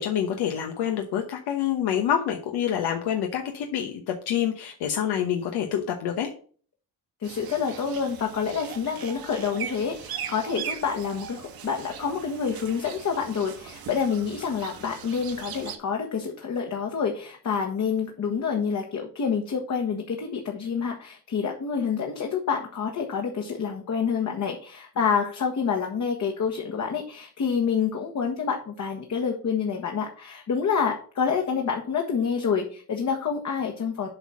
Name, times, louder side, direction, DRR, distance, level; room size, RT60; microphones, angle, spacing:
voice 1, 0.0-6.3, left 9 dB, 85° left, 4 dB, 1.1 m, -27 dB
voice 2, 7.2-34.1, left 6 dB, 45° left, 2 dB, 1.4 m, -28 dB
sound 1, 7.2-15.8, right 8 dB, 65° right, 1.5 m, -39 dB
7.9 x 4.2 x 6.2 m, 0.44 s
cardioid pair, 110°, 39 cm